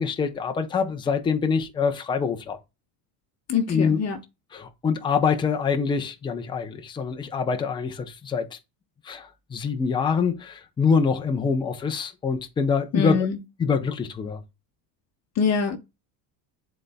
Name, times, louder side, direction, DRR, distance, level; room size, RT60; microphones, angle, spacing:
voice 1, 0.0-2.6 3.7-4.0 4.5-8.6 9.0-13.3 13.6-14.4, left 5 dB, 10° left, 0.5 m, -25 dB
voice 2, 3.5-4.2 12.9-13.4 15.4-15.8, left 6 dB, 35° left, 0.9 m, -24 dB
11.0 x 4.1 x 2.2 m
cardioid pair, 175°, 48 cm